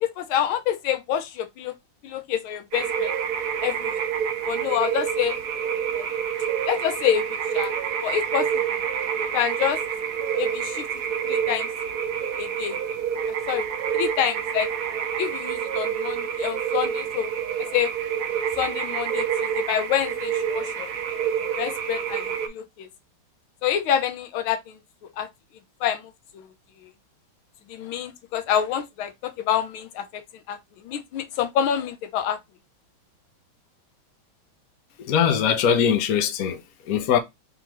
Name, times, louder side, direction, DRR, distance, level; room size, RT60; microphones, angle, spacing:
voice 1, 0.0-1.7 2.0-3.1 3.6-3.9 4.5-5.4 5.9-6.1 6.7-7.2 7.5-7.7 8.0-8.8 9.3-9.8 10.4-10.8 11.3-11.7 12.4-12.8 13.5-13.6 13.9-14.7 15.2-17.3 17.7-17.9 18.6-19.3 19.6-20.9 21.6-22.9 23.6-24.8 25.2-25.3 25.8-26.0 26.3-26.5 27.7-30.2 30.5-30.6 30.8-32.4, left 9 dB, 90° left, 1.6 m, -27 dB
sound 1, 2.7-22.5, right 8 dB, 65° right, 1.0 m, -28 dB
voice 2, 35.0-37.2, left 8 dB, 65° left, 0.9 m, -22 dB
3.8 x 3.4 x 3.0 m
omnidirectional pair, 2.2 m